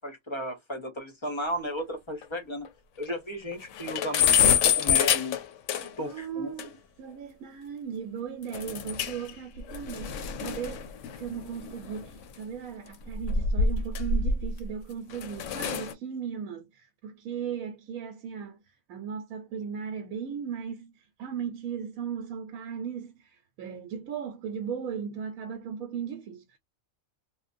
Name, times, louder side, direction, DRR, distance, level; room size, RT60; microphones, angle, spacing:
voice 1, 0.0-2.7 3.0-5.4 6.0-6.5, equal, 35° left, 0.5 m, -34 dB
sound 1, 1.8-1.9 2.2-2.3 2.6-2.7 3.1-3.2 3.5-6.1 6.6-6.7 8.5-9.3 9.6-12.2 13.0-14.7 15.1-15.9, left 7 dB, 70° left, 0.8 m, -26 dB
voice 2, 5.7-10.8 11.2-18.6 18.9-26.6, right 7 dB, 85° right, 1.0 m, -37 dB
3.1 x 2.0 x 2.5 m
omnidirectional pair, 1.5 m